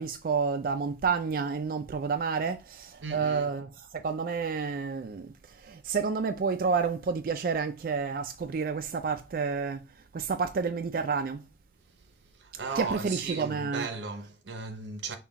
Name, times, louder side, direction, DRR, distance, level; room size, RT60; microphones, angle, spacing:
voice 1, 0.0-3.7 3.9-9.8 10.1-11.4 12.7-13.9, right 5 dB, 50° right, 0.3 m, -30 dB
voice 2, 3.0-3.5 12.4-15.2, right 4 dB, 90° right, 0.7 m, -36 dB
5.7 x 2.3 x 3.5 m
head